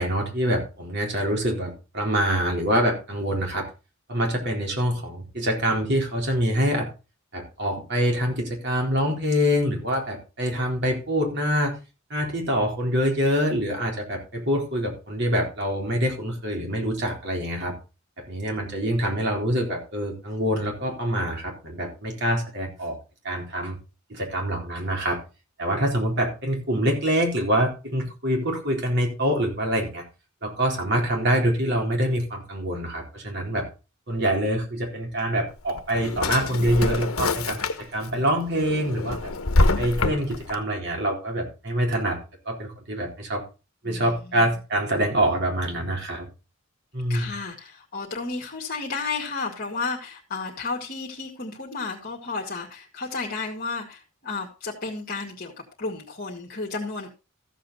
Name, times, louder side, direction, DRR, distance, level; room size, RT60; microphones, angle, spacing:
voice 1, 0.0-3.7 4.1-6.9 7.3-11.7 12.1-17.7 18.2-23.0 23.2-23.8 24.1-25.2 25.6-30.0 30.4-33.6 34.1-39.3 39.8-42.2 42.5-43.4 43.8-46.3 46.9-47.4, equal, 55° right, 1 dB, 3.9 m, -25 dB
Drawer open or close, 35.5-38.1 38.5-40.6, left 2 dB, 85° left, 1.2 m, -25 dB
voice 2, 43.8-44.6 47.1-55.5 55.8-57.1, left 4 dB, 45° left, -1 dB, 1.9 m, -32 dB
14.0 x 7.5 x 4.1 m, 0.31 s
head